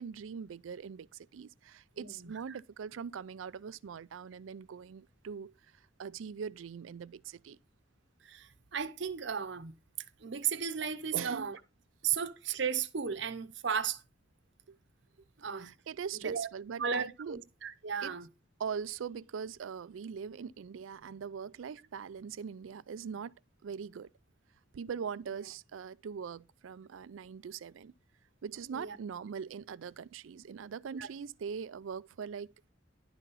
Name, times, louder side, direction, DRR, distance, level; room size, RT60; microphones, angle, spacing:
voice 1, 0.0-7.6 11.1-11.5 14.7-14.8 15.6-17.4 18.0-18.2 18.6-23.3 23.6-24.1 24.7-27.9 28.4-32.5, right 6 dB, 90° right, 0.4 m, -42 dB
voice 2, 2.0-2.6 8.2-9.7 10.2-11.6 12.0-14.0 15.4-15.7 16.1-16.5 16.8-18.3 28.7-29.0 31.0-31.1, right 7 dB, 65° right, 0.8 m, -35 dB
11.0 x 4.1 x 5.4 m
head